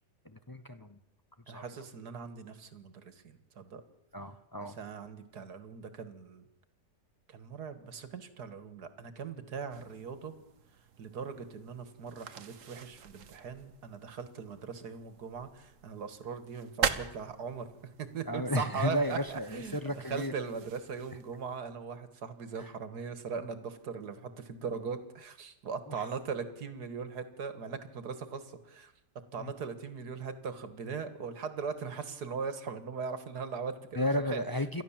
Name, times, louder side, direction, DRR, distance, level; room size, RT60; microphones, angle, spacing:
voice 1, 0.2-1.0 1.5-1.6 4.1-4.8 18.3-20.3 22.6-22.7 25.9-26.1 29.4-29.5 33.9-34.8, left 1 dB, 25° left, 9 dB, 0.5 m, -33 dB
voice 2, 1.5-3.8 4.6-6.5 7.3-10.3 11.0-17.7 18.0-19.8 20.1-28.9 29.3-34.4, right 5 dB, 70° right, 11 dB, 2.1 m, -40 dB
sound 1, 9.7-21.6, right 7 dB, 55° right, 1.3 m, -42 dB
28.0 x 12.5 x 7.3 m, 0.87 s
omnidirectional pair, 1.8 m